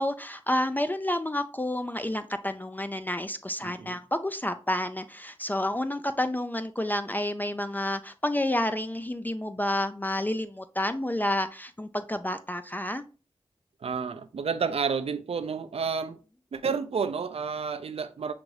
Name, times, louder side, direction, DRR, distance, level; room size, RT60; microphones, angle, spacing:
voice 1, 0.0-13.0, left 1 dB, 15° left, 0.3 m, -30 dB
voice 2, 3.6-4.0 13.8-16.2 16.5-18.3, right 5 dB, 75° right, 0.4 m, -30 dB
5.8 x 2.6 x 3.1 m
cardioid pair, 45°, 10 cm